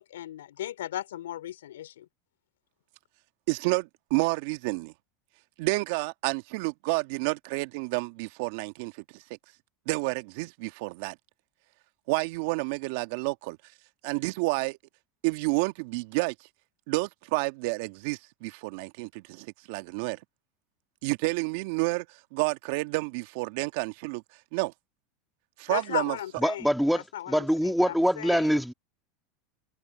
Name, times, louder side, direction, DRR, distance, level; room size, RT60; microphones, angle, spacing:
voice 1, 0.0-2.1 25.7-28.6, left 12 dB, 85° left, 3.8 m, -36 dB
voice 2, 3.5-4.9 5.6-9.2 9.9-11.2 12.1-13.6 14.0-14.8 15.2-16.5 16.9-20.2 21.0-24.2 24.5-24.7 25.6-26.2, right 25 dB, 65° right, 1.7 m, -30 dB
voice 3, 26.4-28.7, equal, ahead, 2.0 m, -24 dB
hypercardioid pair, 95°, 0 cm